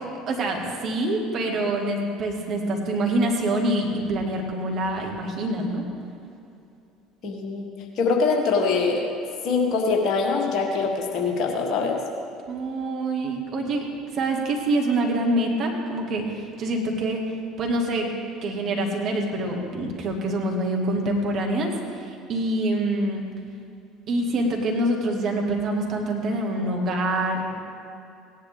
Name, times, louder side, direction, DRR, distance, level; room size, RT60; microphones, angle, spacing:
voice 1, 0.3-5.9 12.5-13.9 14.1-17.3 17.6-18.1 18.4-23.2 24.1-27.5, right 1 dB, 45° right, 1 dB, 1.9 m, -25 dB
voice 2, 7.2-7.7 8.0-9.1 9.4-12.0, left 4 dB, 50° left, 1 dB, 1.8 m, -23 dB
17.5 x 10.5 x 3.5 m, 2.6 s
figure-of-eight pair, 60°, 0 cm